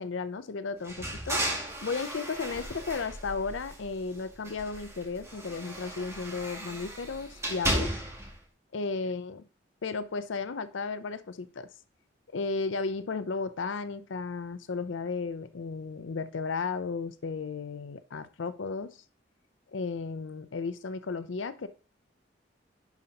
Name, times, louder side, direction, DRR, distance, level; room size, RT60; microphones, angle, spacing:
voice 1, 0.0-1.4 1.8-7.9 8.7-9.4 9.8-11.7 12.3-18.9 19.7-21.7, left 4 dB, 75° left, 12 dB, 0.6 m, -34 dB
sound 1, 0.8-4.0 4.4-8.3, right 1 dB, 15° right, 2.1 m, -35 dB
10.5 x 5.3 x 2.9 m, 0.39 s
head